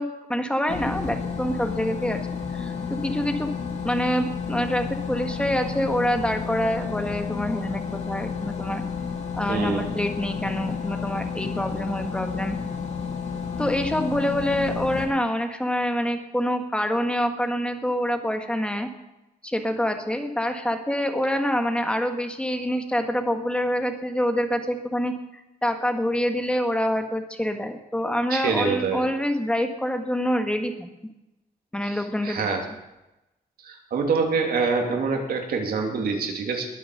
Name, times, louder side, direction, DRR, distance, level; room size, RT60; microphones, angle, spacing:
voice 1, 0.0-2.2 2.5-3.5 3.8-8.8 9.3-12.6 13.6-18.9 19.4-25.1 25.6-30.7 31.7-32.4, equal, 5° left, 6 dB, 1.6 m, -26 dB
sound 1, 0.7-15.0, left 6 dB, 45° left, 2.6 m, -31 dB
voice 2, 9.5-9.9 28.3-29.1 32.2-32.6 33.6-36.7, right 4 dB, 75° right, 2 dB, 2.9 m, -25 dB
21.0 x 7.6 x 6.7 m, 0.96 s
wide cardioid pair, 130°, 16 cm